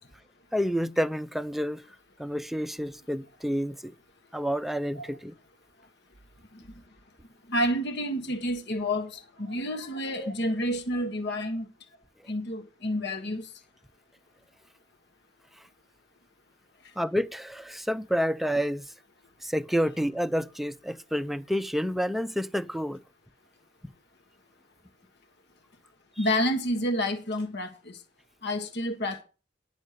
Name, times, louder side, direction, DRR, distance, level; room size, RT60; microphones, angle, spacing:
voice 1, 0.5-1.8 2.2-3.9 4.3-5.3 10.2-10.3 17.0-18.9 19.4-23.0, equal, ahead, 0.5 m, -29 dB
voice 2, 7.5-11.7 12.3-13.5 26.2-28.0 28.4-29.2, equal, 60° left, 1.4 m, -29 dB
10.5 x 6.4 x 6.6 m
head